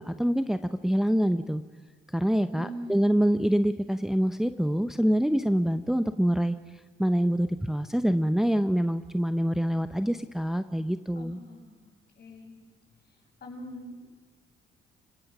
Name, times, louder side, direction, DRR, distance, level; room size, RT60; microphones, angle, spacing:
voice 1, 0.0-1.6 2.1-6.6 7.0-11.4, equal, ahead, 10 dB, 0.7 m, -25 dB
voice 2, 2.5-3.0 11.1-11.7 12.2-12.6 13.4-14.0, equal, 50° left, 0 dB, 7.3 m, -42 dB
29.5 x 18.0 x 6.1 m, 1.4 s
cardioid pair, 90°, 20 cm